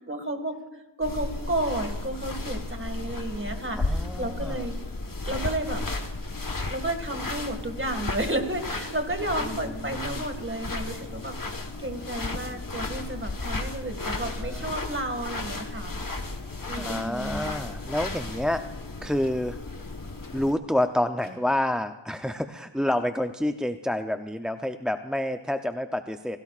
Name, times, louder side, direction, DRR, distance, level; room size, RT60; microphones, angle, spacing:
voice 1, 0.1-4.8 5.3-5.8 6.7-11.5 11.8-15.9 16.7-17.5, right 1 dB, 25° right, 5 dB, 2.1 m, -32 dB
sound 1, 1.0-20.5, left 2 dB, 45° left, 1.4 m, -34 dB
voice 2, 3.8-4.7 9.4-10.2 14.0-14.7 16.7-18.6 19.0-19.6 20.3-26.4, left 1 dB, ahead, 7 dB, 0.6 m, -29 dB
sound 2, 6.2-6.3 7.2-7.4 8.2-8.3 9.2-9.3 10.2-10.4 11.1-11.4 12.2-12.3 13.2-13.3 14.2-14.3 15.2-15.3 16.2-16.3 17.2-17.4 18.2-18.4 19.2-19.3 20.2-20.4 21.2-21.3, left 3 dB, 80° left, 3.6 m, -54 dB
28.5 x 17.5 x 2.5 m, 1.1 s
wide cardioid pair, 50°, 45 cm